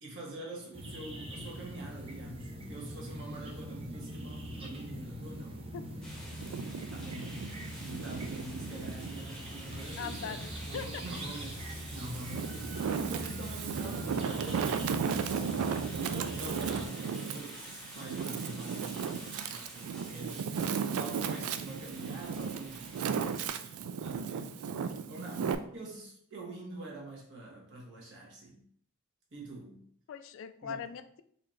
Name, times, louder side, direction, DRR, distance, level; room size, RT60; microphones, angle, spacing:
voice 1, 0.0-5.9 6.9-15.5 16.0-19.1 19.5-20.5 20.9-28.6 29.3-29.8 30.6-30.9, right 2 dB, 60° right, -3 dB, 1.3 m, -45 dB
sound 1, 0.7-16.9, equal, 25° right, 0.6 m, -43 dB
sound 2, 6.0-23.5, equal, 5° left, 0.8 m, -49 dB
Wind, 6.3-9.2 9.7-11.0 11.6-25.5, right 6 dB, 85° right, 0.3 m, -35 dB
voice 2, 10.0-11.0 30.1-31.2, left 7 dB, 65° left, 11 dB, 0.3 m, -41 dB
4.1 x 2.7 x 3.1 m, 0.64 s
head